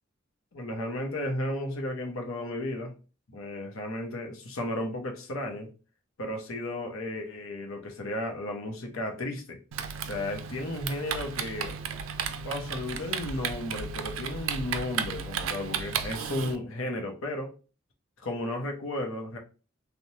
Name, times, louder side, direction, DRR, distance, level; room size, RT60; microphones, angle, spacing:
voice 1, 0.5-2.9 3.3-5.7 6.2-9.6 10.0-11.8 12.4-17.5 18.2-19.4, left 1 dB, 85° left, 3 dB, 0.7 m, -34 dB
Typing, 9.7-16.6, right 7 dB, 80° right, 0.3 m, -34 dB
3.1 x 2.1 x 2.7 m, 0.34 s
head